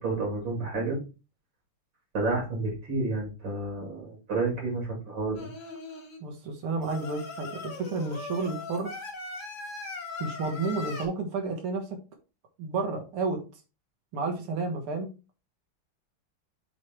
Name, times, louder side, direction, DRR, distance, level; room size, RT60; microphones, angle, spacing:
voice 1, 0.0-1.0 2.1-5.4, right 3 dB, 60° right, -1 dB, 3.5 m, -30 dB
Singing, 5.3-6.2 6.8-11.1, left 3 dB, 65° left, 2.8 m, -39 dB
voice 2, 6.2-8.9 10.2-11.9 12.6-13.4 14.1-15.1, right 3 dB, 85° right, 3 dB, 2.4 m, -31 dB
8.0 x 3.3 x 4.6 m, 0.30 s
omnidirectional pair, 2.4 m